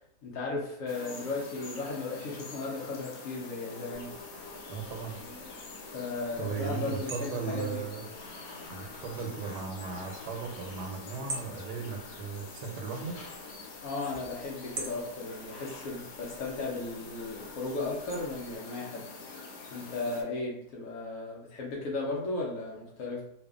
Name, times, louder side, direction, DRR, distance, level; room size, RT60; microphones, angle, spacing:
voice 1, 0.2-4.1 5.9-7.8 13.8-19.0 19.7-23.2, left 3 dB, 70° left, -3 dB, 0.8 m, -35 dB
sound 1, 0.9-20.2, left 3 dB, 90° left, 1.2 m, -45 dB
sound 2, 3.9-18.6, right 2 dB, 60° right, 0.9 m, -48 dB
voice 2, 4.7-5.1 6.4-8.0 8.7-13.2, right 5 dB, 90° right, 2 dB, 1.2 m, -36 dB
2.6 x 2.4 x 2.3 m, 0.71 s
omnidirectional pair, 1.7 m